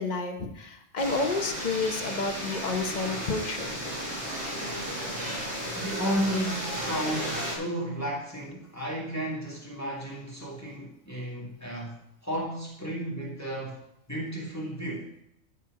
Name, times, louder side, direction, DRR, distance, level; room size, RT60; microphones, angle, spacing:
voice 1, 0.0-3.8, left 3 dB, 35° left, 5 dB, 0.9 m, -30 dB
sound 1, 1.0-7.6, equal, 65° right, 2.5 m, -34 dB
voice 2, 5.7-13.8 14.1-15.1, equal, 10° left, -4 dB, 1.8 m, -33 dB
12.5 x 4.6 x 4.8 m, 0.77 s
omnidirectional pair, 1.4 m